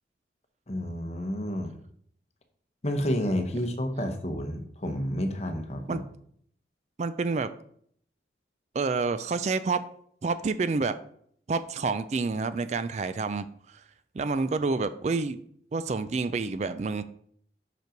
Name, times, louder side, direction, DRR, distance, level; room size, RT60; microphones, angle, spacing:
voice 1, 0.7-1.7 2.8-6.0, equal, 35° left, 5 dB, 1.0 m, -30 dB
voice 2, 7.0-7.5 8.7-9.8 10.2-11.0 11.5-13.5 14.1-15.4 15.7-17.0, right 4 dB, 40° right, 13 dB, 0.3 m, -28 dB
6.1 x 5.3 x 5.1 m, 0.65 s
head